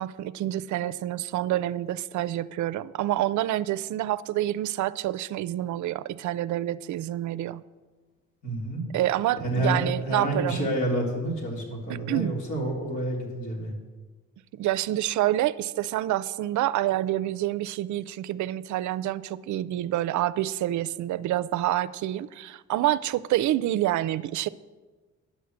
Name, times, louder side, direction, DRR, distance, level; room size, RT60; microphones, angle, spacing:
voice 1, 0.0-7.6 8.9-10.7 12.1-12.3 14.6-24.5, right 14 dB, 70° right, 17 dB, 0.5 m, -27 dB
voice 2, 8.4-8.8 9.4-13.7, right 1 dB, 70° left, -2 dB, 3.5 m, -29 dB
10.0 x 6.4 x 8.0 m, 1.3 s
cardioid pair, 90°, 30 cm